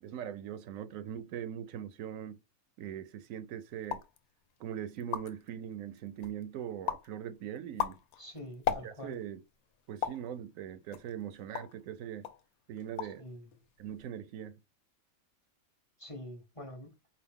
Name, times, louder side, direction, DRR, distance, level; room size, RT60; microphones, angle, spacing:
voice 1, 0.0-2.4 2.8-4.0 4.6-8.0 8.7-9.4 9.9-12.3 12.7-13.2 13.8-14.6, right 10 dB, 75° right, 0.9 m, -41 dB
sound 1, 3.8-4.2 4.7-4.8 5.0-5.5 6.0-6.4 6.9-7.1 7.6-9.2 10.0-10.3 10.9-11.8 12.2-12.4 12.8-13.3 13.5-14.0, left 9 dB, 85° left, 1.1 m, -36 dB
voice 2, 8.2-9.2 13.2-13.4 16.0-16.9, left 1 dB, 25° left, 0.9 m, -45 dB
4.8 x 2.6 x 3.5 m
omnidirectional pair, 1.5 m